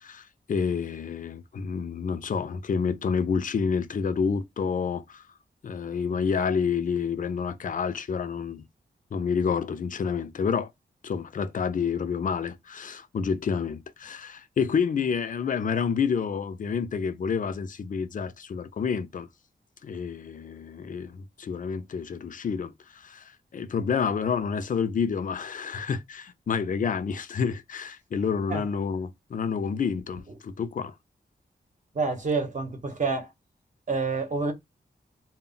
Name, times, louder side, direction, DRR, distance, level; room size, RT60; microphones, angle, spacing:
voice 1, 0.0-5.2 5.6-8.7 9.1-10.7 11.0-19.3 19.8-30.9, left 6 dB, 50° left, 0.4 m, -29 dB
voice 2, 31.9-33.3 33.9-34.5, right 4 dB, 45° right, 0.8 m, -28 dB
2.1 x 2.0 x 3.7 m
wide cardioid pair, 110°, 18 cm